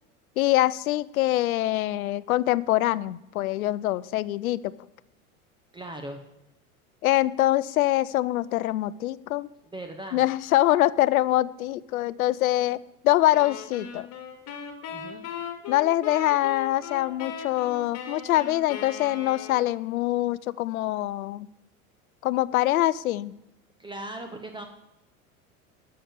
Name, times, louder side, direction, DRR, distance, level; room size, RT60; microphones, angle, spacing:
voice 1, 0.4-4.7 7.0-9.5 10.1-12.8 13.0-14.1 15.7-21.5 22.2-23.3, left 15 dB, 70° left, 19 dB, 0.6 m, -24 dB
voice 2, 5.7-6.2 9.6-10.2 14.9-15.3 23.8-24.7, right 1 dB, 10° right, 5 dB, 1.0 m, -38 dB
sound 1, 13.3-19.9, left 7 dB, 35° left, 2.1 m, -38 dB
11.5 x 6.9 x 6.5 m, 0.88 s
hypercardioid pair, 85°, 43 cm